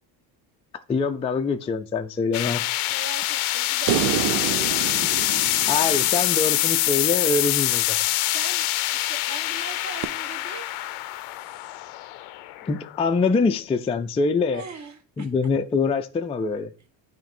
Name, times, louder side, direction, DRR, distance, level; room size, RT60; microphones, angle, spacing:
voice 1, 0.9-2.9 5.7-8.0 12.7-14.6 15.2-16.7, left 4 dB, 15° left, 0.3 m, -24 dB
sound 1, 2.3-13.5, left 16 dB, 80° left, 0.6 m, -25 dB
voice 2, 2.9-5.0 8.3-10.7 14.5-15.3, right 5 dB, 35° right, 1.2 m, -41 dB
sound 2, 3.9-7.2 10.0-10.1, right 12 dB, 90° right, 0.6 m, -28 dB
8.9 x 3.1 x 4.3 m
cardioid pair, 95°, 50 cm